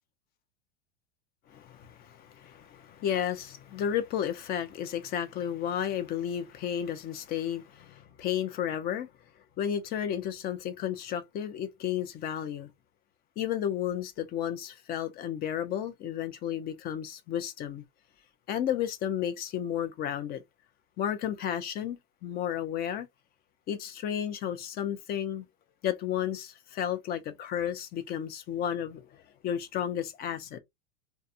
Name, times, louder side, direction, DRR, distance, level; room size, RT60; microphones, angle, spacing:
voice 1, 1.5-9.1 9.6-12.7 13.4-17.8 18.5-20.4 21.0-23.1 23.7-25.4 25.8-30.6, left 10 dB, 30° left, 0.4 m, -32 dB
2.5 x 2.2 x 2.7 m
hypercardioid pair, 120°, 34 cm